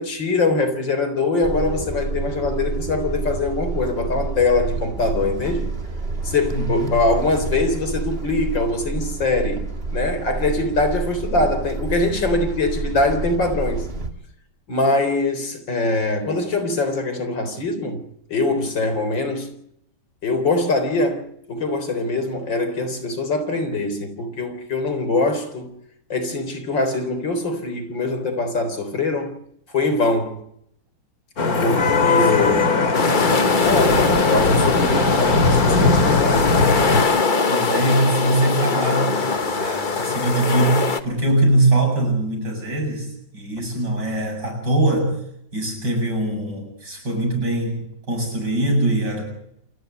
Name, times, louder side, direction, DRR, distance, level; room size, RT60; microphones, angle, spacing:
voice 1, 0.0-5.7 6.2-13.9 14.7-18.0 18.3-19.5 20.2-25.7 26.1-29.4 29.7-30.4 31.6-32.7 33.6-36.5, left 2 dB, 90° left, 4.6 m, -23 dB
sound 1, 1.4-14.1, right 3 dB, 30° right, 2.5 m, -28 dB
voice 2, 6.5-7.0 32.2-32.5 37.5-45.2 45.5-49.3, right 1 dB, 65° right, 8.7 m, -22 dB
Vehicle horn car horn honking / Traffic noise roadway noise, 31.4-37.0, left 3 dB, 55° left, 2.8 m, -19 dB
sound 2, 32.9-41.0, left 4 dB, 30° left, 1.2 m, -22 dB
27.5 x 11.5 x 9.5 m
omnidirectional pair, 2.0 m